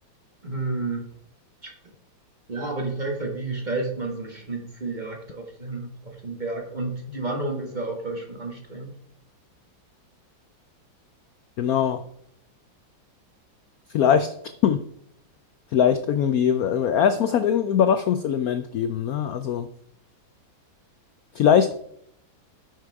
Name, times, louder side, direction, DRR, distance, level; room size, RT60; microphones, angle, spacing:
voice 1, 0.4-1.1 1.6-1.7 2.5-8.9, right 3 dB, 25° right, 2 dB, 1.4 m, -31 dB
voice 2, 11.6-12.0 13.9-14.3 14.6-14.8 15.7-19.7 21.3-21.7, left 8 dB, 80° left, 10 dB, 0.8 m, -21 dB
10.5 x 6.2 x 4.7 m, 0.70 s
omnidirectional pair, 2.2 m